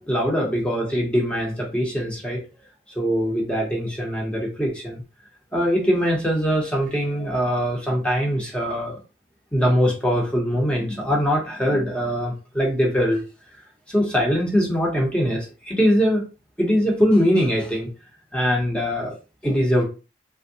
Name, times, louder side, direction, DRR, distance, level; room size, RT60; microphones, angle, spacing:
voice 1, 0.1-2.4 3.0-5.0 5.5-9.0 9.5-13.2 13.9-16.2 16.6-17.9 18.3-19.1 19.4-19.8, equal, 5° left, -1 dB, 0.8 m, -22 dB
3.4 x 2.2 x 2.7 m, 0.32 s
head